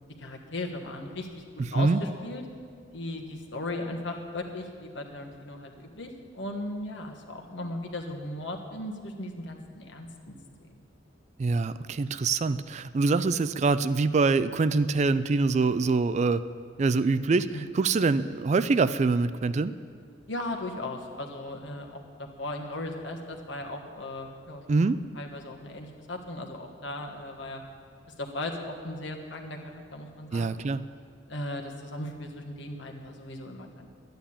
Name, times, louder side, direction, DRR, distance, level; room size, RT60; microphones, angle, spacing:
voice 1, 0.2-2.4 2.9-10.7 20.3-27.6 28.2-30.5 31.3-33.9, left 1 dB, 65° left, 2 dB, 1.4 m, -37 dB
voice 2, 11.4-16.4 16.8-19.7 24.7-25.0 30.3-30.8, right 4 dB, 35° right, 14 dB, 0.3 m, -24 dB
11.5 x 9.3 x 8.7 m, 2.2 s
head